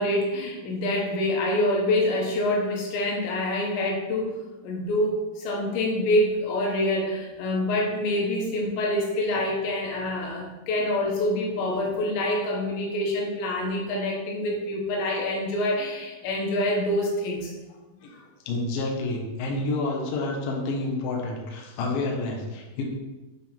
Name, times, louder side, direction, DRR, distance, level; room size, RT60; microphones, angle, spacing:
voice 1, 0.0-4.3 4.6-17.5 18.1-18.2, left 1 dB, 70° left, -1 dB, 3.3 m, -26 dB
voice 2, 18.5-22.8, left 2 dB, 90° left, 0 dB, 2.0 m, -29 dB
8.5 x 3.7 x 4.3 m, 1.1 s
omnidirectional pair, 5.7 m